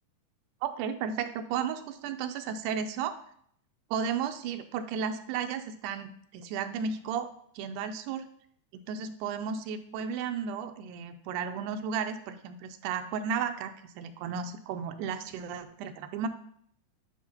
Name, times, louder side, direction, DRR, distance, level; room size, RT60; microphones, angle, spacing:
voice 1, 0.6-3.1 3.9-7.3 7.6-8.3 8.9-16.3, right 7 dB, 80° right, 8 dB, 2.0 m, -34 dB
9.6 x 4.3 x 2.9 m, 0.65 s
omnidirectional pair, 3.7 m